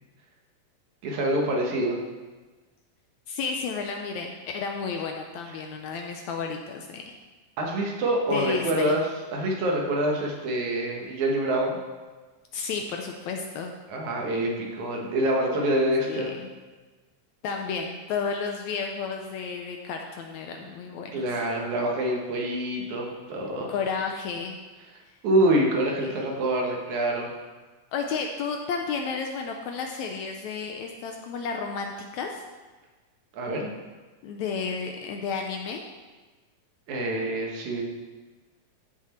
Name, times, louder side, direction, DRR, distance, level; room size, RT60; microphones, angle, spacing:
voice 1, 1.0-2.0 7.6-11.8 13.9-16.3 21.1-23.7 25.2-27.3 33.3-33.7 36.9-37.8, right 1 dB, 65° right, 0 dB, 2.6 m, -26 dB
voice 2, 3.3-7.1 8.3-9.0 12.5-13.7 16.1-16.5 17.4-21.3 23.7-24.6 26.0-26.1 27.9-32.4 34.2-35.8, left 5 dB, 75° left, 3 dB, 1.8 m, -32 dB
14.0 x 6.1 x 4.3 m, 1.3 s
omnidirectional pair, 3.8 m